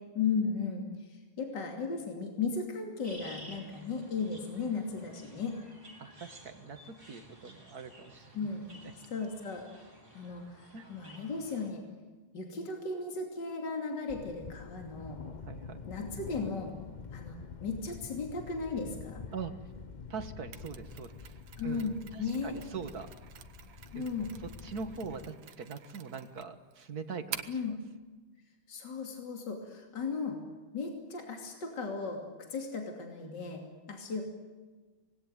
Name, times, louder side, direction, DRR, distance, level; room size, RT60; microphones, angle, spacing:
voice 1, 0.1-5.6 8.3-8.7 9.1-9.6 10.1-11.8 12.3-15.2 15.9-16.7 17.1-19.2 21.6-22.5 23.9-24.3 27.5-27.8 28.7-30.4 30.7-32.2 32.5-33.6 33.9-34.2, left 4 dB, 55° left, 2 dB, 3.4 m, -36 dB
sound 1, 3.0-11.7, right 1 dB, 25° right, 5.7 m, -53 dB
voice 2, 6.0-8.4 10.7-10.9 15.4-15.8 19.3-19.6 20.1-23.1 23.9-24.1 24.4-27.8, right 5 dB, 50° right, 8 dB, 1.9 m, -42 dB
Thunder, 14.1-25.3, left 5 dB, 80° left, 0.4 m, -47 dB
Mechanisms, 20.5-27.7, right 9 dB, 70° right, 1.9 m, -48 dB
25.5 x 20.5 x 9.1 m, 1.3 s
omnidirectional pair, 2.3 m